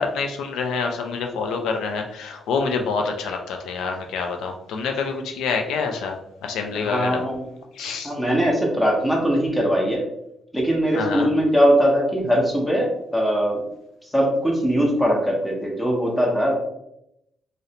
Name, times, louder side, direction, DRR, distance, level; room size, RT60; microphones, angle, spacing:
voice 1, 0.0-7.2 7.7-8.1 10.9-11.3, left 5 dB, 80° left, 3 dB, 0.3 m, -27 dB
voice 2, 6.7-7.5 8.0-10.0 10.5-13.6 14.0-16.6, equal, 5° left, -1 dB, 0.8 m, -21 dB
2.5 x 2.1 x 2.7 m, 0.80 s
cardioid pair, 90°, 0 cm